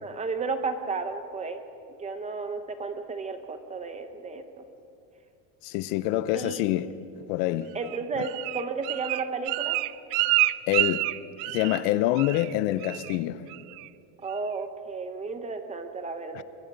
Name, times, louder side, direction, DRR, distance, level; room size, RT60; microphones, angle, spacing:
voice 1, 0.0-1.6 2.0-4.6 6.3-6.6 7.7-9.8 14.2-16.4, right 4 dB, 15° right, 0.7 m, -33 dB
voice 2, 5.6-6.9 7.3-7.7 8.2-8.3 10.7-11.0 11.4-13.4 16.3-16.4, left 14 dB, 75° left, 1.0 m, -26 dB
Bird, 7.8-11.9 12.2-12.5 12.8-13.2 13.5-13.9 14.3-14.4, right 20 dB, 75° right, 0.7 m, -28 dB
24.0 x 22.0 x 5.4 m
cardioid pair, 180°, 48 cm